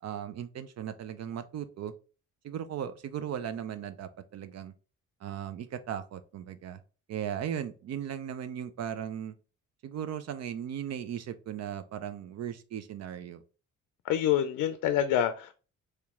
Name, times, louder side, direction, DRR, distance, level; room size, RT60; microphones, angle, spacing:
voice 1, 0.0-1.9 2.4-4.7 5.2-6.8 7.1-9.3 9.8-13.4, right 9 dB, 60° right, 11 dB, 0.5 m, -37 dB
voice 2, 14.1-15.5, left 10 dB, 85° left, 9 dB, 0.5 m, -26 dB
3.2 x 2.9 x 3.5 m, 0.35 s
cardioid pair, 90°, 30 cm